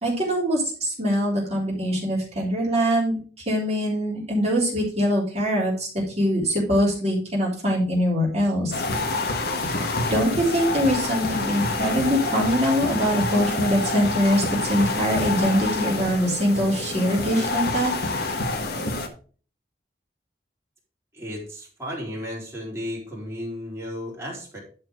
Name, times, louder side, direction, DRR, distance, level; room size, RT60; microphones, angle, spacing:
voice 1, 0.0-8.7 10.1-17.9, equal, 40° right, -5 dB, 3.4 m, -23 dB
sound 1, 8.7-19.1, left 2 dB, 60° left, 1.5 m, -27 dB
voice 2, 21.1-24.6, equal, 15° right, -4 dB, 3.9 m, -34 dB
11.0 x 4.5 x 5.1 m, 0.41 s
head